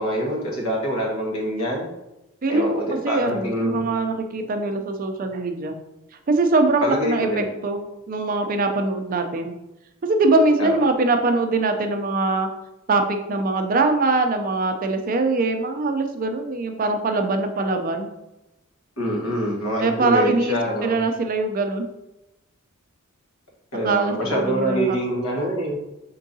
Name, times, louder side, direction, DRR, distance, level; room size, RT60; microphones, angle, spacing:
voice 1, 0.0-1.9 2.5-3.8 6.8-7.4 10.6-10.7 19.0-21.0 23.7-25.8, equal, 80° left, -2 dB, 1.4 m, -25 dB
voice 2, 3.0-5.8 6.3-9.5 10.0-12.5 12.9-18.1 19.8-20.6 20.8-21.9 23.8-25.0, right 3 dB, 40° right, 6 dB, 0.4 m, -22 dB
4.5 x 3.7 x 2.7 m, 0.94 s
head